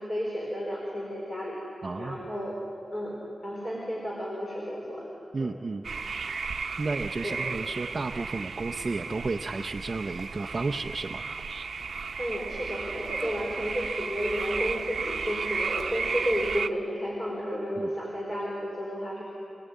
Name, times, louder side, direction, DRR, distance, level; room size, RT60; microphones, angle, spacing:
voice 1, 0.0-1.6 2.0-2.5 2.9-3.2 3.4-5.1 5.4-5.5 7.2-7.4 12.2-19.2, equal, 25° left, -4 dB, 4.6 m, -32 dB
voice 2, 1.8-2.3 5.3-5.9 6.8-11.2 17.8-17.9, right 3 dB, 35° right, 4 dB, 0.6 m, -32 dB
sound 1, 5.8-16.7, right 5 dB, 60° right, 0.9 m, -34 dB
27.5 x 18.5 x 9.2 m, 2.7 s
wide cardioid pair, 180°, 0 cm